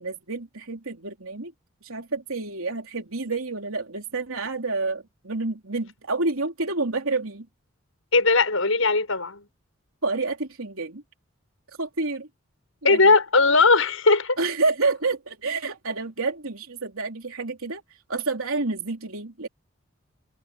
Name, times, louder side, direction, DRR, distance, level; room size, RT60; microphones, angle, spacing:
voice 1, 0.0-1.5 1.8-7.5 10.0-11.0 11.8-12.3 12.8-13.1 14.4-17.8 18.1-19.5, right 3 dB, 80° right, 3.3 m, -29 dB
voice 2, 8.1-9.4 12.8-14.4, left 3 dB, 70° left, 6.5 m, -19 dB
head